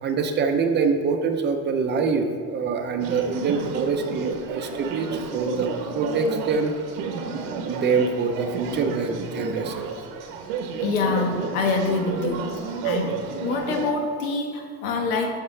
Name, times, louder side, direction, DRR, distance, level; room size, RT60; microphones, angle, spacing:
voice 1, 0.0-5.1 5.3-6.7 7.3-9.9, right 5 dB, 25° right, 5 dB, 0.6 m, -25 dB
sound 1, 3.0-13.9, right 5 dB, 75° right, 1.2 m, -31 dB
voice 2, 10.8-12.5 12.8-15.4, left 4 dB, 90° left, 3 dB, 1.4 m, -25 dB
12.5 x 5.8 x 3.3 m, 2.2 s
cardioid pair, 150°, 39 cm